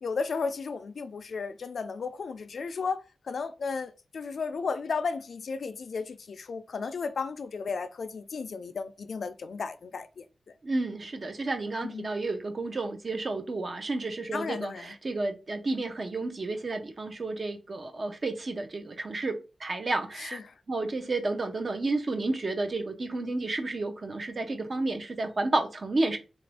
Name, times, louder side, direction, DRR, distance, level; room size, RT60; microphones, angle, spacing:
voice 1, 0.0-10.3 11.8-12.1 14.3-15.0 20.1-20.4, left 5 dB, 70° left, 0.3 m, -34 dB
voice 2, 10.6-20.4 20.7-26.2, right 2 dB, 45° right, 0.6 m, -31 dB
3.0 x 2.5 x 3.3 m
wide cardioid pair, 105°, 0 cm